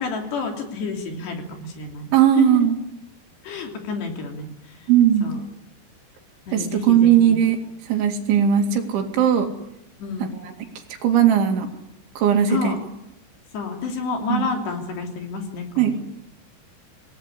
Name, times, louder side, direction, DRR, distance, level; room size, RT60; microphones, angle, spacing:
voice 1, 0.0-2.1 2.4-2.6 3.4-4.9 5.2-5.4 6.5-7.4 10.0-10.3 12.5-12.8 13.5-16.0, left 4 dB, 60° left, 3 dB, 5.1 m, -29 dB
voice 2, 2.1-2.8 4.9-5.3 6.5-7.6 7.9-9.5 10.2-10.5 11.0-11.7 12.2-12.8 14.3-14.5 15.8-16.0, right 9 dB, 70° right, 4 dB, 4.6 m, -18 dB
27.0 x 19.0 x 9.8 m, 0.84 s
omnidirectional pair, 5.7 m